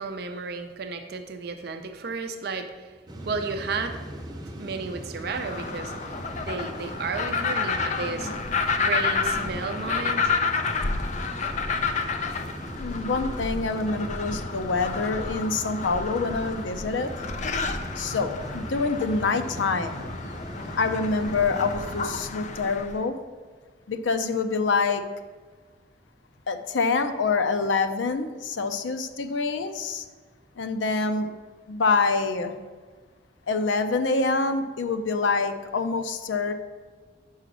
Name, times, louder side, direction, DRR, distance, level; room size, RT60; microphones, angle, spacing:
voice 1, 0.0-2.9 3.3-4.0 4.6-5.9 6.4-8.5 8.8-10.3 10.7-10.8, right 4 dB, 60° right, 7 dB, 0.5 m, -33 dB
sound 1, 3.1-22.2, right 1 dB, 20° right, 0.6 m, -39 dB
sound 2, 5.3-23.0, left 4 dB, 40° left, 0.4 m, -30 dB
voice 2, 12.8-17.1 18.0-20.1 20.8-23.1 23.9-25.0 26.5-30.1 30.6-31.3 31.7-32.6 33.5-36.5, left 4 dB, 90° left, 8 dB, 0.5 m, -26 dB
5.6 x 5.0 x 6.1 m, 1.4 s
head